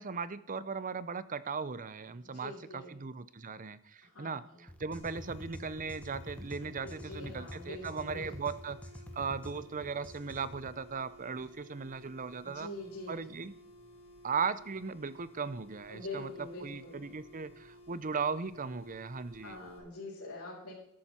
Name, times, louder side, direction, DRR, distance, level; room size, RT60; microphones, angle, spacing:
voice 1, 0.0-8.8 9.1-12.7 13.1-13.5 14.2-19.6, right 5 dB, 35° right, 15 dB, 0.6 m, -38 dB
voice 2, 2.2-2.9 4.0-4.6 6.6-8.3 12.4-13.2 15.9-17.0 19.4-20.7, left 2 dB, 70° left, -8 dB, 5.7 m, -45 dB
sound 1, 4.7-10.8, left 1 dB, 5° left, 1.2 m, -47 dB
sound 2, 5.0-19.8, equal, 25° left, 4.7 m, -56 dB
13.0 x 12.5 x 4.4 m, 0.80 s
head